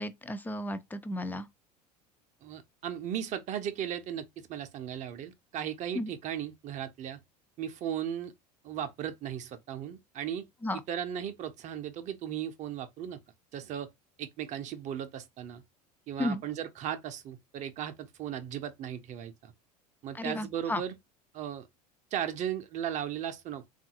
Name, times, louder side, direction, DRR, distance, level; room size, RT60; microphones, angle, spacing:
voice 1, 0.0-1.5 5.9-6.1 10.6-10.8 16.2-16.4 20.1-20.8, left 1 dB, 10° left, 0.4 m, -33 dB
voice 2, 2.4-7.2 7.6-8.3 8.6-10.4 10.9-13.2 13.5-13.9 14.2-15.6 16.1-19.5 20.0-21.0 21.3-21.7 22.1-23.7, right 9 dB, 35° right, 0.6 m, -36 dB
3.9 x 2.4 x 2.8 m
figure-of-eight pair, 75°, 20 cm